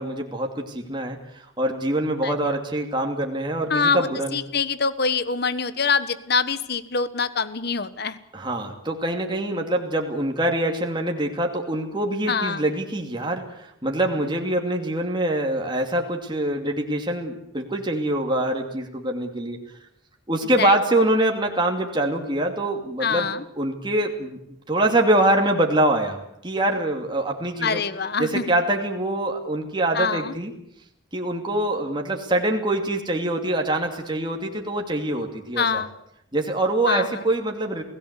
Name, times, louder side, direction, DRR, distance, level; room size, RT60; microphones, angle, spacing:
voice 1, 0.0-4.4 8.3-19.6 20.3-24.4 24.7-27.8 28.2-30.5 31.1-35.8 36.3-37.8, right 1 dB, 20° right, 2 dB, 2.6 m, -24 dB
voice 2, 3.7-8.2 12.3-12.6 20.6-20.7 23.0-23.4 27.6-28.4 29.9-30.3 35.6-35.9 36.9-37.1, left 5 dB, 50° left, 14 dB, 1.4 m, -24 dB
28.5 x 18.0 x 8.3 m, 0.76 s
head